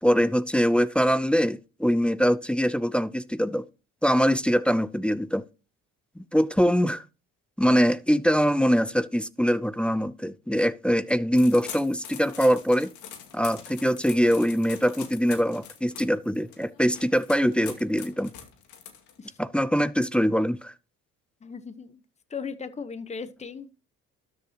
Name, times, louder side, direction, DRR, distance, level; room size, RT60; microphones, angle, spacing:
voice 1, 0.0-3.6 4.0-5.4 6.2-7.1 7.6-12.9 13.3-18.3 19.4-20.7, equal, 5° left, 0.6 m, -23 dB
sound 1, 11.4-19.4, left 8 dB, 85° left, 2.2 m, -43 dB
voice 2, 21.4-22.0 22.3-23.7, left 5 dB, 25° left, 1.0 m, -37 dB
12.5 x 8.0 x 2.9 m
cardioid pair, 95°, 29 cm